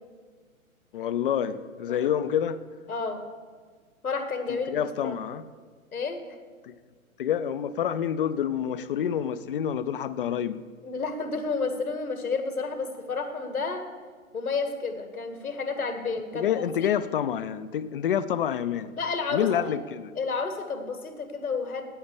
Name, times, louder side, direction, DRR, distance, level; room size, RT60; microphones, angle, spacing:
voice 1, 0.9-2.6 4.5-5.4 6.6-6.8 7.2-10.6 16.3-18.9 19.3-20.1, left 9 dB, 40° left, 14 dB, 0.5 m, -28 dB
voice 2, 2.9-3.2 4.0-5.2 5.9-6.4 10.8-13.9 14.3-16.5 16.8-16.9 19.0-19.6 20.2-21.8, left 4 dB, 85° left, 7 dB, 1.9 m, -31 dB
8.9 x 8.7 x 8.0 m, 1.5 s
figure-of-eight pair, 125°, 42 cm